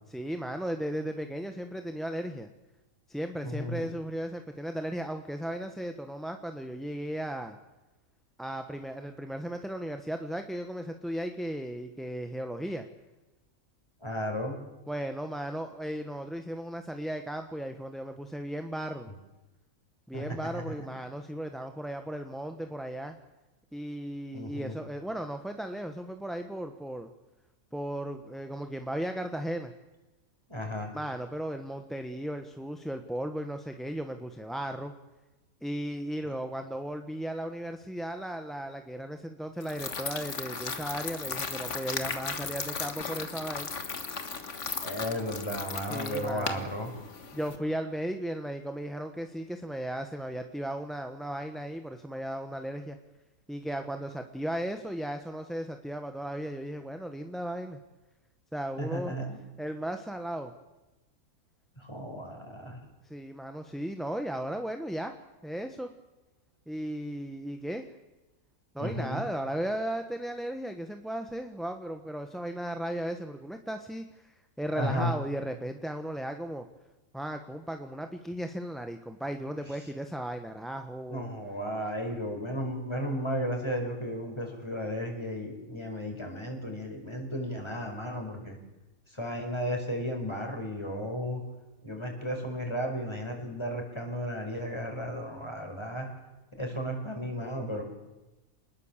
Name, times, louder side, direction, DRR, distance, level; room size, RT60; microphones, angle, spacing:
voice 1, 0.1-2.5 3.1-7.6 8.4-12.9 14.9-19.1 20.1-23.1 23.7-27.1 27.7-29.7 30.9-34.9 35.6-43.7 45.9-46.6 47.3-53.0 53.5-57.8 58.5-59.1 59.6-60.5 63.0-65.2 65.4-65.9 66.7-67.9 68.7-76.7 77.1-81.3, right 1 dB, ahead, 6 dB, 1.1 m, -36 dB
voice 2, 3.4-3.9 14.0-14.6 20.1-20.2 20.5-20.9 24.3-24.8 30.5-30.9 36.2-36.3 44.8-46.9 58.8-59.4 61.8-62.8 68.8-69.2 74.7-75.1 81.1-88.6 89.1-91.4 91.8-96.1 96.6-97.8, equal, 20° left, 3 dB, 5.0 m, -34 dB
sound 1, 39.6-47.6, left 5 dB, 55° left, 1.9 m, -36 dB
26.0 x 20.5 x 7.4 m, 1.1 s
omnidirectional pair, 1.5 m